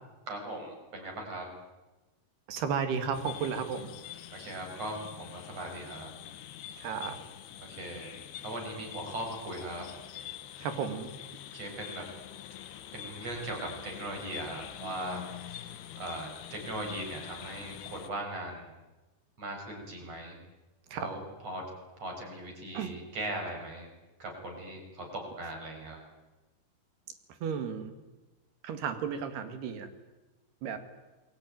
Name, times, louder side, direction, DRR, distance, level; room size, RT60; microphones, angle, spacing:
voice 1, 0.3-1.5 4.3-6.1 7.6-8.1 8.4-9.9 11.5-12.1 12.9-15.2 15.5-15.6 16.0-18.7 19.4-20.4 20.9-21.6 22.0-23.9 24.2-26.0, right 1 dB, 40° right, 3 dB, 7.2 m, -39 dB
voice 2, 2.5-3.9 6.8-7.2 10.6-11.1 20.9-21.1 22.7-22.9 27.4-28.0 28.6-29.9 30.6-30.8, right 6 dB, 80° right, 8 dB, 4.2 m, -33 dB
sound 1, 3.1-18.1, left 11 dB, 85° left, 3.3 m, -45 dB
27.5 x 22.0 x 9.4 m, 1.1 s
omnidirectional pair, 4.6 m